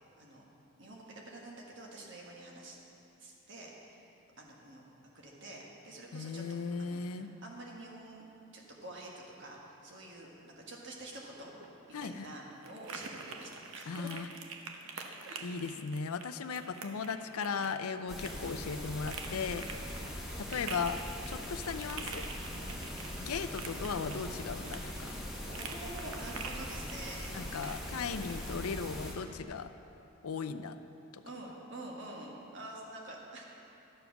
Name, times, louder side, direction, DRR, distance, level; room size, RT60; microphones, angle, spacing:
voice 1, 0.8-2.8 3.2-4.0 4.4-4.8 5.1-6.4 6.8-11.5 12.0-14.1 14.9-15.5 17.8-18.0 19.8-20.2 22.5-22.9 25.5-27.6 28.0-28.3 31.2-33.4, right 1 dB, 55° right, -2 dB, 1.6 m, -48 dB
voice 2, 6.1-7.3 11.9-12.3 13.9-14.3 15.4-19.7 20.4-21.0 21.3-22.2 23.2-25.2 27.3-29.7 30.2-30.8 31.1-31.2, left 5 dB, 90° left, 10 dB, 0.5 m, -37 dB
sound 1, 11.4-28.6, right 4 dB, 75° right, 0.8 m, -47 dB
sound 2, 18.1-29.1, left 1 dB, ahead, 1.1 m, -41 dB
12.0 x 7.1 x 5.9 m, 2.9 s
head